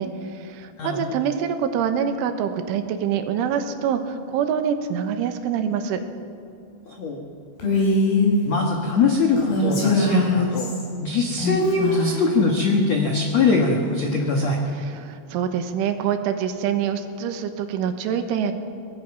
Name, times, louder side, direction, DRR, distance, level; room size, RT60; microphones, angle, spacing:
voice 1, 0.0-6.0 14.8-18.5, right 8 dB, 85° right, 7 dB, 3.7 m, -25 dB
voice 2, 6.8-7.2 8.4-10.7 11.0-14.6, left 3 dB, 75° left, 1 dB, 1.5 m, -22 dB
Female speech woman speaking, 7.6-8.3 9.4-10.8 11.4-12.3, left 2 dB, 55° left, 6.8 m, -21 dB
24.0 x 19.0 x 6.1 m, 2.5 s
omnidirectional pair, 5.6 m